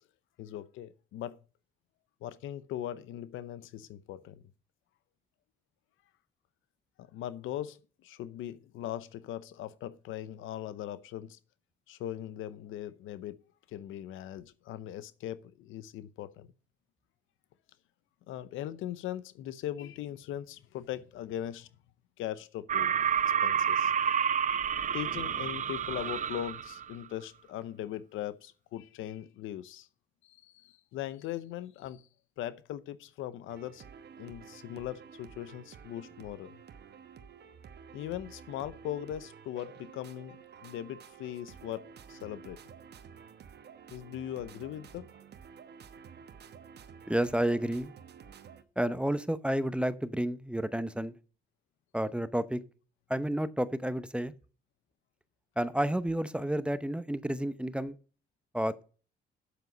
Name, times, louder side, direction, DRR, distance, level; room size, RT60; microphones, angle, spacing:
voice 1, 0.4-1.4 2.2-4.4 7.0-11.4 11.9-13.4 13.7-16.5 18.3-21.7 22.2-23.0 23.4-23.9 24.9-29.9 30.2-32.0 32.4-33.9 34.2-36.6 37.9-42.6 43.9-45.1, left 12 dB, 90° left, 0.8 m, -40 dB
sound 1, 22.7-26.9, right 8 dB, 40° right, 0.5 m, -29 dB
sound 2, 33.5-48.6, right 7 dB, 55° right, 1.1 m, -51 dB
voice 2, 47.1-47.9 48.8-51.1 51.9-52.6 53.1-54.3 55.6-58.0 58.5-58.8, right 1 dB, 5° right, 0.7 m, -30 dB
8.2 x 7.7 x 5.2 m
cardioid pair, 90°, 20 cm